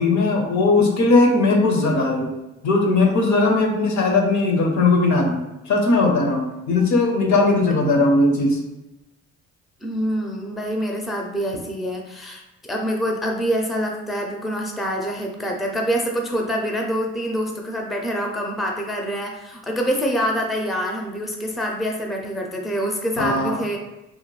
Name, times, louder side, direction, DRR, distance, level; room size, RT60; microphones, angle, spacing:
voice 1, 0.0-2.3 2.6-8.6 23.2-23.6, left 3 dB, 70° left, 2 dB, 0.7 m, -18 dB
voice 2, 7.5-7.8 9.8-23.8, equal, ahead, 1 dB, 0.4 m, -26 dB
2.8 x 2.2 x 3.0 m, 0.95 s
cardioid pair, 90°, 30 cm